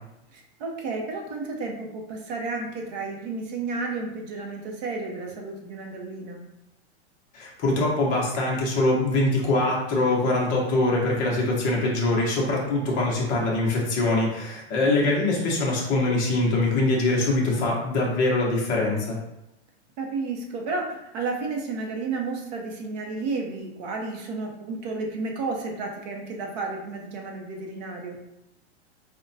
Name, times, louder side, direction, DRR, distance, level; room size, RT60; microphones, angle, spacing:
voice 1, 0.3-6.4 14.7-15.0 20.0-28.2, right 3 dB, 40° right, 1 dB, 0.6 m, -32 dB
voice 2, 7.3-19.2, left 2 dB, 25° left, -3 dB, 0.7 m, -23 dB
5.0 x 2.1 x 2.6 m, 0.89 s
supercardioid pair, 165°, 34 cm